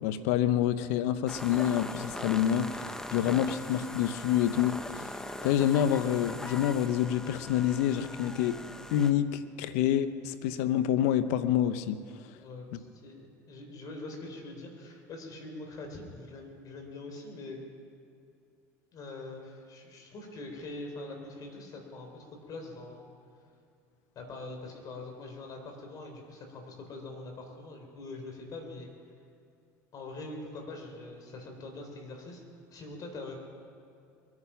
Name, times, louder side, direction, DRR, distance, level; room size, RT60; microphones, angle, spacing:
voice 1, 0.0-5.1 5.4-8.6 8.9-12.0, left 10 dB, 80° left, 13 dB, 0.7 m, -27 dB
sound 1, 1.3-9.1, left 1 dB, 5° left, 0.9 m, -41 dB
voice 2, 12.4-17.6 18.9-23.1 24.2-28.9 29.9-32.4 32.7-33.3, left 2 dB, 50° left, 3 dB, 3.8 m, -43 dB
22.5 x 9.6 x 5.8 m, 2.6 s
supercardioid pair, 90°, 8 cm